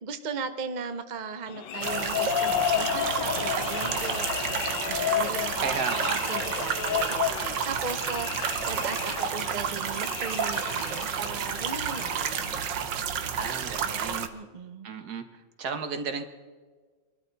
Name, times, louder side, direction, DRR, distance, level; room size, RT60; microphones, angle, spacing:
voice 1, 0.0-12.8 14.3-14.9, right 5 dB, 40° right, 8 dB, 0.6 m, -38 dB
sound 1, 1.5-12.5, left 9 dB, 80° left, 1.6 m, -32 dB
sound 2, 1.8-14.3, right 8 dB, 80° right, 1.6 m, -31 dB
voice 2, 5.6-6.2 13.3-14.3 14.8-15.2 15.6-16.3, right 5 dB, 60° right, 7 dB, 1.7 m, -33 dB
24.5 x 12.5 x 4.0 m, 1.4 s
omnidirectional pair, 1.9 m